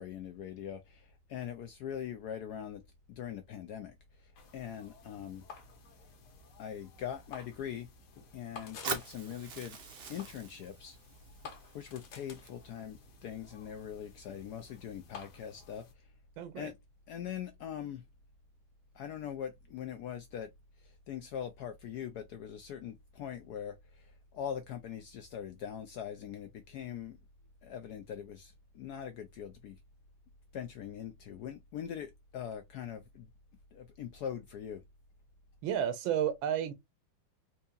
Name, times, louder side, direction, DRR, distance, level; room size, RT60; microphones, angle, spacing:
voice 1, 0.0-2.8 3.1-3.9 4.5-5.4 6.6-7.9 8.3-9.8 10.1-11.0 11.7-15.8 16.6-16.7 17.1-18.0 19.0-20.5 21.1-23.7 24.3-27.2 27.6-29.8 30.5-33.3 33.7-34.8, left 9 dB, 80° left, 0.8 m, -42 dB
sound 1, 4.4-15.9, left 5 dB, 60° left, 1.4 m, -53 dB
Fire, 8.8-12.9, right 6 dB, 60° right, 0.6 m, -43 dB
voice 2, 16.4-16.7 35.6-36.7, right 9 dB, 80° right, 1.4 m, -32 dB
4.6 x 2.7 x 2.3 m
omnidirectional pair, 2.2 m